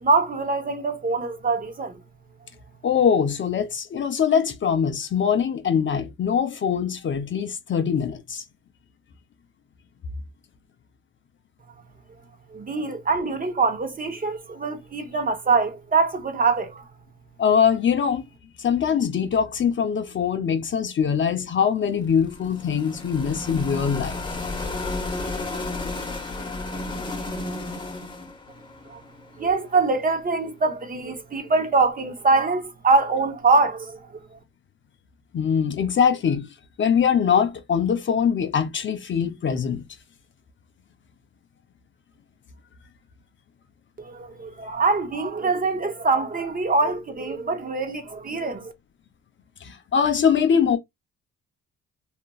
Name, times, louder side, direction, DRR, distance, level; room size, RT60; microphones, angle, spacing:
voice 1, 0.0-2.0 12.5-16.9 28.9-29.0 29.4-34.4 44.0-48.7, right 4 dB, 30° right, 0.7 m, -24 dB
voice 2, 2.8-8.4 17.4-18.2 18.6-24.2 35.3-36.5 36.8-39.8 49.6-50.8, left 7 dB, 40° left, 0.5 m, -22 dB
sound 1, 21.8-29.9, left 2 dB, 15° left, 0.8 m, -33 dB
2.9 x 2.4 x 2.2 m
cardioid pair, 90°, 30 cm